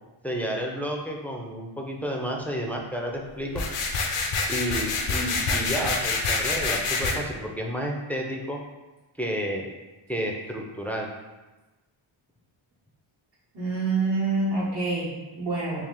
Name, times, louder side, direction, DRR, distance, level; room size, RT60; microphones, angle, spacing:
voice 1, 0.2-3.6 4.5-8.6 9.2-9.6 10.1-11.1, equal, 5° left, 0 dB, 0.5 m, -31 dB
sound 1, 3.5-7.1, left 3 dB, 80° left, 0.6 m, -26 dB
voice 2, 13.5-15.8, right 3 dB, 50° right, -9 dB, 0.9 m, -27 dB
3.3 x 2.5 x 3.7 m, 1.1 s
cardioid pair, 60°, 50 cm